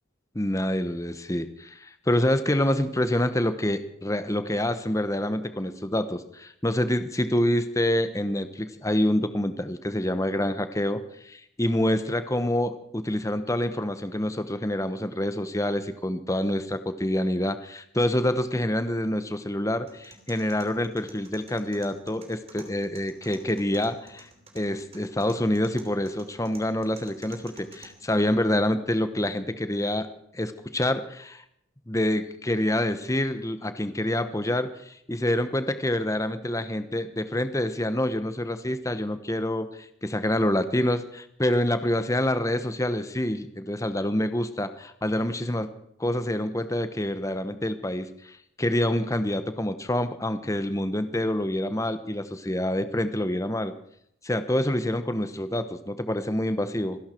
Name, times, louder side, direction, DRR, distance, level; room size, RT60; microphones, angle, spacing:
voice 1, 0.3-23.9 24.5-30.1 30.3-31.4 31.9-45.7 46.0-53.7 54.2-57.0, left 1 dB, 15° left, 11 dB, 1.0 m, -27 dB
sound 1, 19.9-27.9, right 3 dB, 30° right, 3.0 m, -51 dB
26.5 x 11.5 x 4.5 m, 0.73 s
head